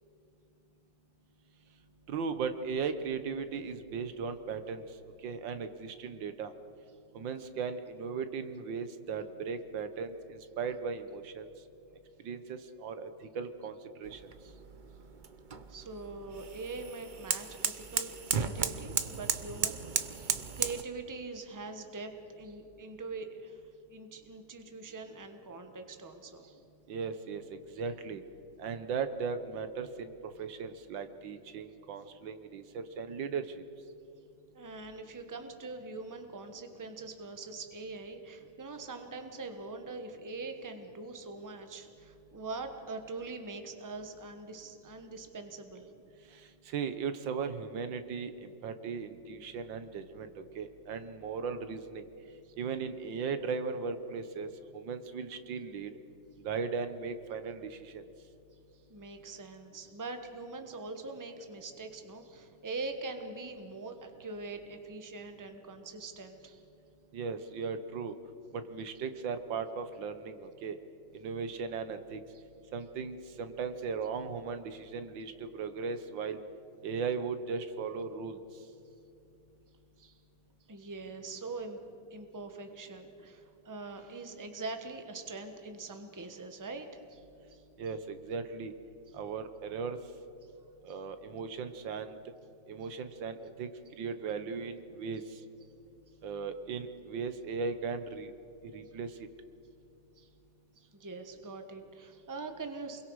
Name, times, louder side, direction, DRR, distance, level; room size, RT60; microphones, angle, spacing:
voice 1, 2.1-4.8 5.2-6.5 7.2-11.4 12.3-13.1 13.4-13.7 14.0-14.2 26.9-28.2 28.6-30.1 30.4-33.4 46.7-52.0 52.6-54.5 54.7-55.9 56.4-58.0 67.1-68.2 68.7-70.8 71.1-72.2 72.7-76.4 76.8-78.4 87.8-88.7 89.1-90.0 90.9-92.2 92.7-93.7 94.0-95.2 96.2-98.3 98.7-99.1, right 5 dB, 80° right, 10 dB, 1.8 m, -37 dB
sound 1, 14.0-20.8, right 6 dB, 65° right, 0.4 m, -35 dB
voice 2, 15.7-23.6 23.9-26.6 34.5-45.9 52.4-52.5 58.9-66.6 72.3-72.4 80.0-80.2 80.7-81.8 82.1-87.2 87.5-87.6 90.9-91.0 100.2-100.3 100.8-103.0, right 3 dB, 10° right, 6 dB, 1.1 m, -43 dB
28.5 x 22.0 x 4.8 m, 2.7 s
omnidirectional pair, 2.0 m